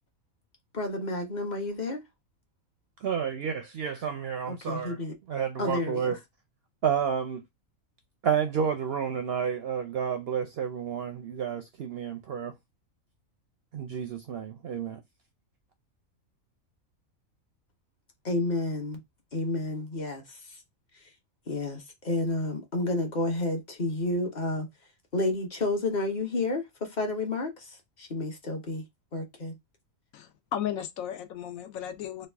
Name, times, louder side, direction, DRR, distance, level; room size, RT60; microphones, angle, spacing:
voice 1, 0.7-2.0 4.5-5.1 5.6-6.2 18.2-19.0 19.3-20.4 21.5-24.7 25.1-28.8 29.1-29.5, left 2 dB, 40° left, 0.8 m, -30 dB
voice 2, 3.0-5.0 5.3-6.2 6.8-7.4 8.2-12.5 13.7-15.0, right 7 dB, 65° right, 0.6 m, -30 dB
voice 3, 30.1-32.3, left 10 dB, 80° left, 1.0 m, -35 dB
3.1 x 2.3 x 3.3 m
omnidirectional pair, 1.4 m